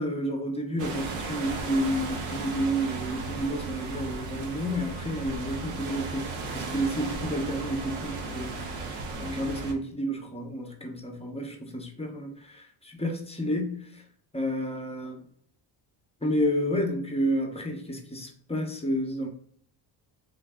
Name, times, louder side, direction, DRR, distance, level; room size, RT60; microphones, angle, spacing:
voice 1, 0.0-8.7 9.2-13.9 14.3-15.2 16.2-19.3, equal, 15° left, 0.8 m, -30 dB
sound 1, 0.8-9.7, right 3 dB, 75° right, 0.8 m, -35 dB
3.2 x 2.6 x 2.3 m
cardioid pair, 85°, 48 cm